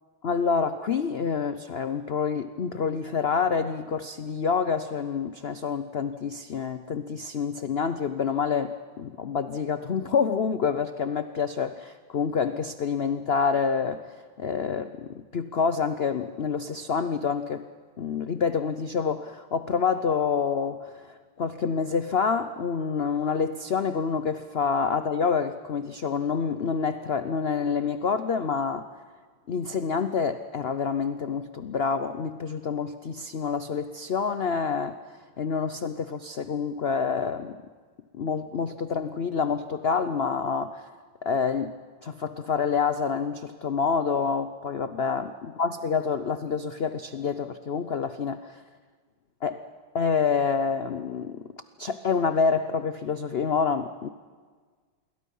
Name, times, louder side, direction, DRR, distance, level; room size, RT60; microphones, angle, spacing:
voice 1, 0.2-17.7 18.0-28.9 29.5-35.0 35.4-37.6 38.1-40.9 41.2-41.7 42.0-48.6 49.4-49.6 49.9-51.5 51.8-54.1, left 5 dB, 90° left, 10 dB, 0.5 m, -27 dB
27.5 x 22.0 x 5.5 m, 1.5 s
omnidirectional pair, 2.1 m